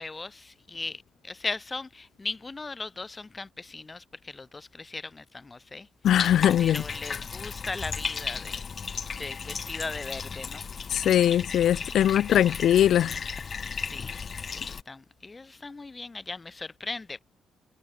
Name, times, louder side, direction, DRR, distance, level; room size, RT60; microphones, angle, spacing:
voice 1, 0.0-5.9 6.6-8.6 9.2-10.6 11.9-12.1 13.7-17.2, left 3 dB, 25° left, 6.7 m, -38 dB
voice 2, 6.0-6.8 10.9-13.2, left 11 dB, 70° left, 0.5 m, -21 dB
Bathtub (filling or washing), 6.0-14.8, left 6 dB, 40° left, 0.9 m, -35 dB
cardioid pair, 90°, 0 cm